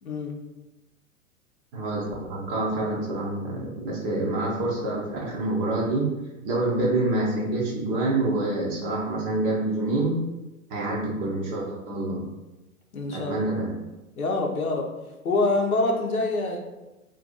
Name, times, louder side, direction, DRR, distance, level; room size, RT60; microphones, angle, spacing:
voice 1, 0.0-0.4 12.9-13.3 14.2-14.9 15.2-16.6, left 2 dB, 75° left, 2 dB, 0.8 m, -25 dB
voice 2, 1.7-6.1 6.4-10.1 10.7-12.3 13.1-13.9, right 2 dB, 20° right, -4 dB, 0.4 m, -27 dB
2.6 x 2.5 x 3.7 m, 1.0 s
figure-of-eight pair, 105°, 43 cm